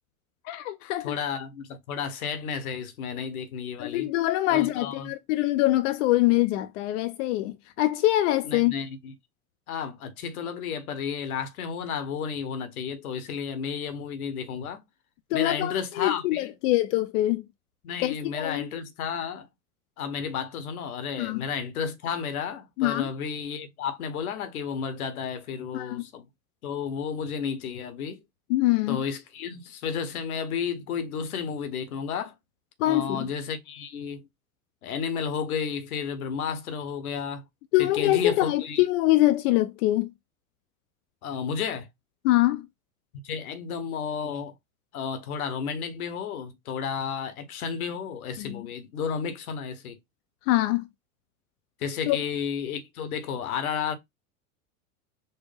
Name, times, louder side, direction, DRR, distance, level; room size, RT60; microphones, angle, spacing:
voice 1, 0.4-1.2 3.8-8.7 15.3-17.4 18.0-18.7 21.2-21.4 22.8-23.1 25.7-26.0 28.5-29.0 32.8-33.3 37.7-40.1 42.2-42.7 48.4-48.7 50.5-50.8 52.1-52.2, left 16 dB, 60° left, 0.5 m, -24 dB
voice 2, 1.0-4.1 4.5-5.1 8.4-9.1 9.7-14.8 15.3-16.5 17.8-19.5 20.0-26.2 26.6-28.2 28.9-32.3 32.9-34.3 34.8-37.4 37.8-38.8 41.2-41.9 43.2-44.5 44.9-50.0 51.8-54.0, left 6 dB, 80° left, 1.0 m, -32 dB
4.4 x 2.1 x 3.3 m
hypercardioid pair, 90°, 43 cm